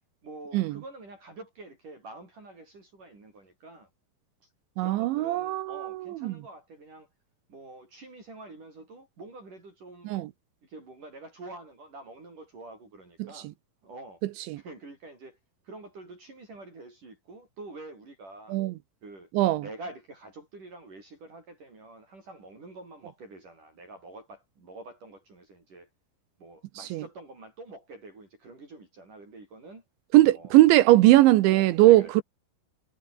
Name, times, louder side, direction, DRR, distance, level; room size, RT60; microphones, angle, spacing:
voice 1, 0.2-3.9 4.8-7.1 7.5-10.1 10.6-13.5 13.8-14.2 14.6-15.4 15.7-18.6 19.0-19.3 19.6-25.9 26.4-29.8 30.3-30.5 31.5-32.1, right 2 dB, 40° right, 8.7 m, -46 dB
voice 2, 4.8-6.3 10.1-10.3 14.5-14.6 18.5-18.7 19.3-19.6 26.9-27.0 30.1-32.2, right 16 dB, 80° right, 2.9 m, -20 dB
omnidirectional pair, 6.0 m